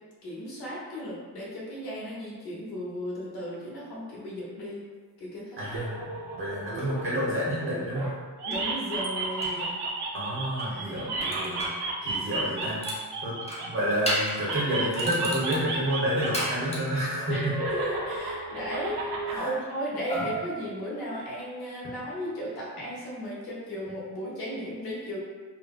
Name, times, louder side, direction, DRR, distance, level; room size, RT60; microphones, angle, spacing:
voice 1, 0.2-4.8 5.2-5.7 8.4-9.8 10.7-11.4 17.3-25.2, equal, 65° left, -5 dB, 1.0 m, -35 dB
voice 2, 5.6-8.1 10.1-11.6 12.0-12.8 13.2-13.3 13.6-17.5 19.3-19.5 20.1-20.3, equal, 30° right, -8 dB, 0.9 m, -29 dB
sound 1, 5.7-8.1 8.4-13.9 14.4-16.5 16.8-19.4, right 3 dB, 85° right, 0.6 m, -33 dB
sound 2, 6.7-6.9 8.5-8.6 9.0-9.7 10.6-11.8 12.4-13.0 13.4-14.5 14.9-17.3 20.1-21.4, equal, 15° left, 0.5 m, -34 dB
3.9 x 2.1 x 2.4 m, 1.4 s
wide cardioid pair, 175°, 40 cm